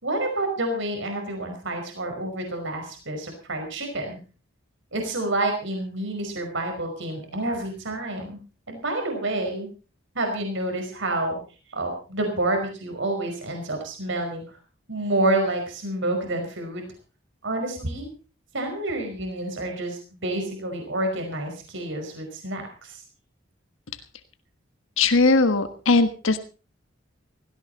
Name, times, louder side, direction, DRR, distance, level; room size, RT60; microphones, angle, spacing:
voice 1, 0.0-4.2 4.9-8.4 8.7-9.7 10.1-11.4 11.7-14.6 14.9-16.9 17.4-18.1 18.5-23.0, right 2 dB, 65° right, 4 dB, 5.1 m, -28 dB
voice 2, 25.0-26.4, left 3 dB, 75° left, 9 dB, 1.4 m, -19 dB
17.0 x 16.5 x 4.1 m, 0.35 s
head